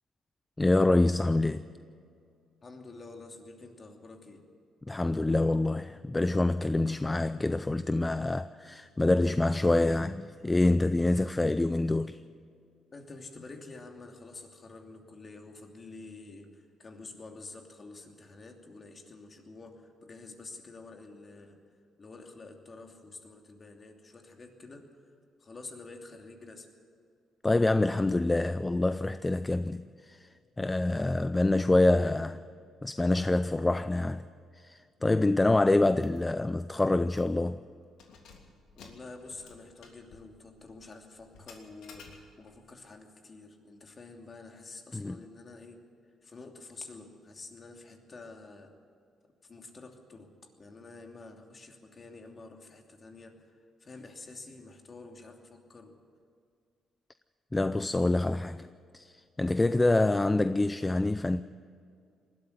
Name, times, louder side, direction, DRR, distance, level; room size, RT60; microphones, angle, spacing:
voice 1, 0.6-1.6 4.9-12.2 27.4-30.3 30.6-32.3 32.8-34.3 34.6-37.6 44.9-45.2 57.5-58.7 58.9-59.1 59.4-61.4, left 2 dB, 15° left, 0.5 m, -26 dB
voice 2, 2.6-4.4 12.9-21.6 22.0-25.0 25.4-26.7 31.8-32.4 38.7-45.8 46.2-48.7 49.4-56.0, left 3 dB, 35° left, 2.8 m, -48 dB
Keys jangling, 36.0-36.2 36.5-36.6 37.1-37.4 37.9-42.6, left 4 dB, 80° left, 3.0 m, -55 dB
20.0 x 13.0 x 10.0 m
cardioid pair, 90°, 0 cm